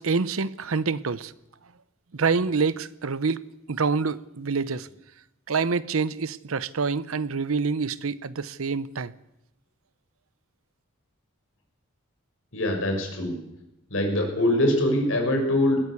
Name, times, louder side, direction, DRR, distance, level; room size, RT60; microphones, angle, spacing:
voice 1, 0.0-1.3 2.1-4.9 5.5-9.1, right 4 dB, 85° right, 0.8 m, -26 dB
voice 2, 12.5-13.4 13.9-15.8, left 1 dB, 70° left, 6.4 m, -23 dB
19.5 x 17.0 x 8.4 m
head